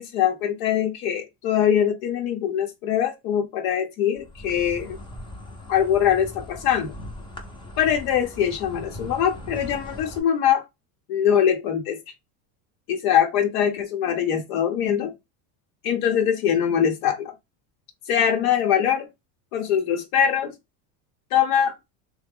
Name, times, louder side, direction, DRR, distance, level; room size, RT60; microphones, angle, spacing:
voice 1, 0.0-5.0 5.7-6.9 7.8-10.6 11.1-12.0 12.9-15.1 15.8-17.3 18.1-19.1 19.5-20.5 21.3-21.8, left 9 dB, 90° left, 0.8 m, -22 dB
Insect, 4.2-10.2, left 1 dB, 15° left, 0.4 m, -39 dB
3.2 x 2.1 x 3.4 m
cardioid pair, 160°, 41 cm